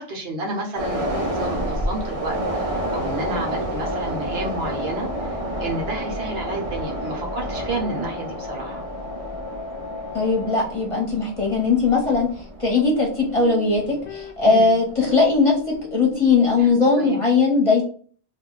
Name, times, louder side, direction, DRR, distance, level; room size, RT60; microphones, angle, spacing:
voice 1, 0.0-8.8 14.5-14.7 16.6-16.7 17.0-17.2, right 1 dB, 70° right, 0 dB, 1.0 m, -31 dB
sound 1, 0.7-15.3 15.7-15.8, right 1 dB, 45° right, 0.5 m, -30 dB
sound 2, 2.2-10.6, left 4 dB, 65° left, 0.7 m, -36 dB
voice 2, 10.1-12.3 12.6-15.5 15.9-17.8, left 4 dB, 35° left, -2 dB, 0.8 m, -19 dB
sound 3, 13.4-16.8, left 10 dB, 90° left, 0.9 m, -38 dB
2.3 x 2.1 x 3.7 m, 0.43 s
omnidirectional pair, 1.1 m